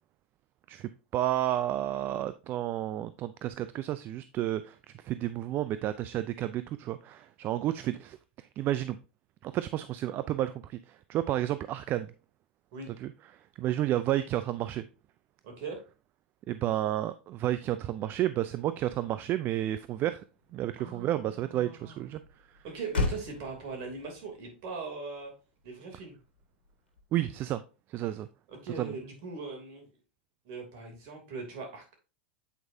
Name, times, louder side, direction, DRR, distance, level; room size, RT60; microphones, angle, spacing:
voice 1, 0.7-9.0 9.4-12.1 12.9-14.8 16.5-20.2 20.5-22.2 22.5-22.6 27.1-27.6 27.9-28.3 28.8-29.0, right 13 dB, 40° right, 0.4 m, -31 dB
voice 2, 15.4-15.8 20.8-21.3 21.5-22.0 22.6-25.3 25.6-26.2 28.5-29.9 30.4-31.9, right 4 dB, 55° right, 2.8 m, -40 dB
Motor vehicle (road), 19.4-27.5, left 3 dB, 90° left, 1.5 m, -40 dB
8.1 x 4.7 x 2.7 m
hypercardioid pair, 110°, 6 cm